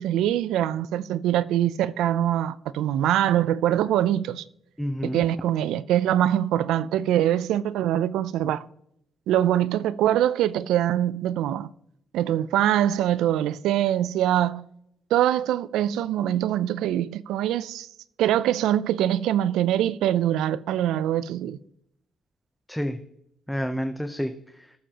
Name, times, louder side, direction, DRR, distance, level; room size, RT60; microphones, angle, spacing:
voice 1, 0.0-4.4 5.0-8.6 9.3-11.7 12.1-14.6 15.1-17.9 18.2-21.6, right 11 dB, 90° right, 0.4 m, -23 dB
voice 2, 4.8-5.2 22.7-23.0 23.5-24.7, equal, ahead, 0.7 m, -29 dB
19.5 x 7.2 x 2.9 m
cardioid pair, 90°, 0 cm